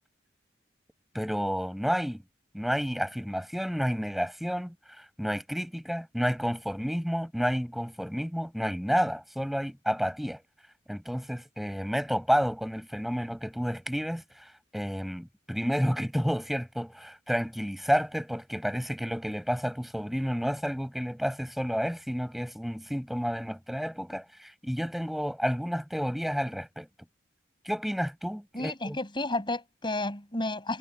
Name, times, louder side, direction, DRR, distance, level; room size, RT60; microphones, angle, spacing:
voice 1, 1.1-2.2 2.5-4.7 5.2-10.4 10.9-26.9 27.7-29.0, equal, ahead, 5.7 m, -30 dB
voice 2, 28.5-30.8, left 2 dB, 25° left, 7.5 m, -32 dB
head